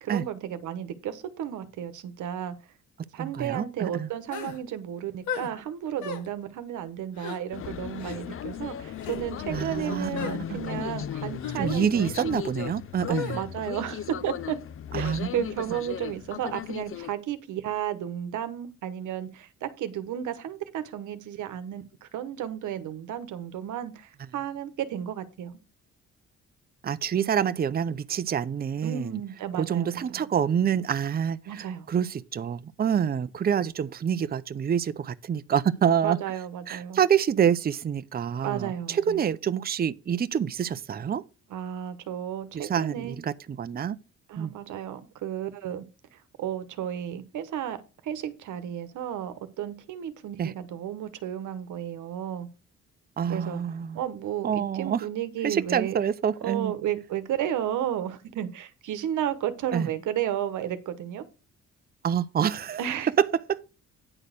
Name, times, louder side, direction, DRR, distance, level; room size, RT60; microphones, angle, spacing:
voice 1, 0.0-2.5 3.1-12.3 13.1-14.6 14.9-25.6 28.8-30.0 31.5-31.9 36.0-37.0 38.4-39.2 41.5-43.2 44.3-45.8 46.4-47.8 48.0-52.5 53.3-53.6 53.9-56.0 56.4-61.2 62.8-63.1, right 10 dB, 80° right, 1.1 m, -33 dB
voice 2, 3.2-4.1 9.5-10.6 11.6-13.4 14.9-15.4 26.8-29.2 29.5-36.2 36.7-41.2 42.5-44.0 44.4-44.5 50.4-50.5 53.2-54.0 54.4-55.1 55.4-56.7 59.7-59.9 62.0-62.8 63.2-63.6, right 8 dB, 30° right, 0.6 m, -27 dB
sound 1, 4.3-4.6 5.3-5.5 6.0-6.3 7.2-7.4 8.0-8.2 8.9-9.2 10.2-10.4 11.4-11.6 13.2-13.4, left 6 dB, 75° left, 1.8 m, -35 dB
sound 2, 7.5-17.1, left 9 dB, 45° left, 0.5 m, -36 dB
9.8 x 4.1 x 6.5 m
cardioid pair, 90°, 30 cm